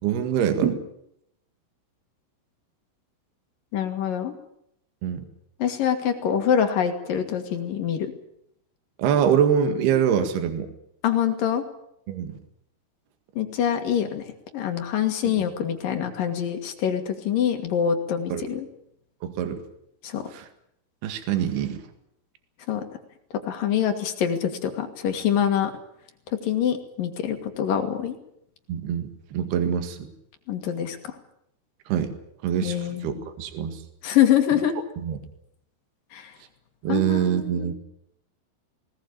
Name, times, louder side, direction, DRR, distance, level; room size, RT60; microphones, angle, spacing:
voice 1, 0.0-0.8 5.0-5.2 9.0-10.7 12.1-12.3 15.2-15.5 18.3-18.5 19.2-19.6 20.3-20.5 21.0-21.8 28.7-30.1 31.9-32.1 32.4-33.8 35.0-35.2 36.8-37.7, right 8 dB, 60° right, 8 dB, 3.6 m, -24 dB
voice 2, 3.7-4.3 5.6-8.1 11.0-11.6 13.4-14.2 14.5-18.7 20.0-20.2 22.7-22.8 23.5-25.7 26.4-28.1 30.5-31.0 32.6-33.3 34.0-34.8 36.1-36.3 36.9-37.7, left 9 dB, 55° left, 6 dB, 2.9 m, -25 dB
20.0 x 19.0 x 8.8 m, 0.75 s
omnidirectional pair, 5.6 m